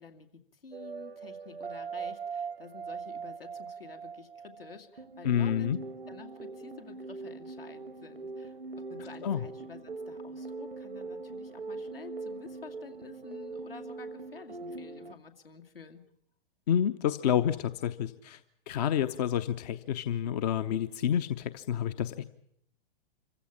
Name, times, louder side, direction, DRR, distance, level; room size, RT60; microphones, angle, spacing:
voice 1, 0.0-5.7 6.1-16.0, left 5 dB, 75° left, 4 dB, 2.5 m, -50 dB
sound 1, 0.7-15.1, right 4 dB, 80° right, 0.9 m, -41 dB
voice 2, 5.2-5.8 9.2-9.4 16.7-18.4 18.7-22.2, left 9 dB, 45° left, 12 dB, 0.9 m, -29 dB
26.0 x 15.5 x 8.6 m, 0.74 s
figure-of-eight pair, 105°, 29 cm